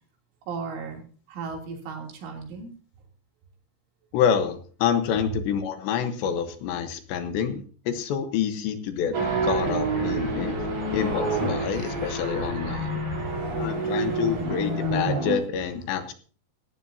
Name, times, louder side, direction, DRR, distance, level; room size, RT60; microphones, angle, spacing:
voice 1, 0.5-2.7 13.1-14.8, right 5 dB, 80° right, 2 dB, 5.5 m, -38 dB
voice 2, 4.1-10.5 10.9-13.0 13.6-16.1, left 8 dB, 75° left, 9 dB, 3.3 m, -27 dB
sound 1, 9.1-15.4, right 2 dB, 35° right, 4.3 m, -28 dB
17.0 x 14.5 x 2.8 m, 0.42 s
omnidirectional pair, 5.4 m